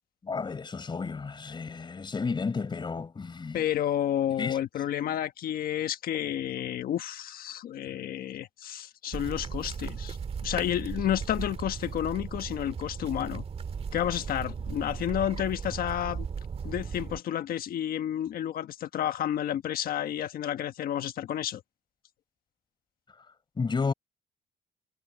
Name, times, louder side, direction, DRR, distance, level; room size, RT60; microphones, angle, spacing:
voice 1, 0.2-3.6 4.4-4.6 23.6-23.9, left 4 dB, 25° left, 4.8 m, -32 dB
voice 2, 3.5-10.2 10.4-13.4 13.9-16.3 16.6-21.6, left 11 dB, 60° left, 1.4 m, -31 dB
sound 1, 9.1-17.2, right 6 dB, 35° right, 1.9 m, -37 dB
cardioid pair, 110°, 17 cm